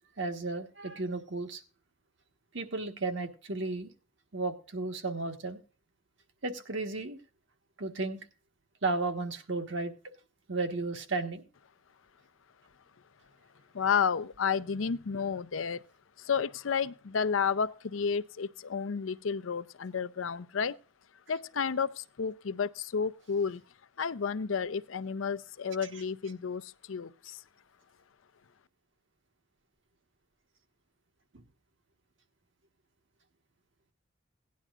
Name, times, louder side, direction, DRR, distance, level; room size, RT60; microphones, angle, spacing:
voice 1, 0.2-1.6 2.5-3.9 4.3-5.6 6.4-7.2 7.8-8.2 8.8-9.9 10.5-11.4 31.3-31.4, right 3 dB, 65° right, 1.4 m, -34 dB
voice 2, 13.7-15.8 16.2-20.8 21.3-23.6 24.0-27.4, left 6 dB, 80° left, 0.5 m, -31 dB
17.5 x 10.5 x 2.4 m
head